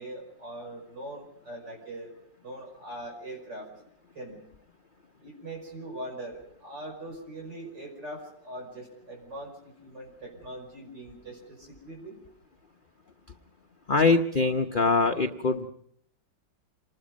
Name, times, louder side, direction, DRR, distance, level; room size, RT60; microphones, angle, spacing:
voice 1, 0.0-2.1 2.4-3.7 4.1-4.4 5.2-12.2, right 1 dB, 70° right, 0 dB, 6.1 m, -41 dB
voice 2, 13.9-15.7, left 3 dB, 40° left, 5 dB, 0.8 m, -23 dB
27.5 x 20.0 x 5.3 m, 0.68 s
omnidirectional pair, 2.0 m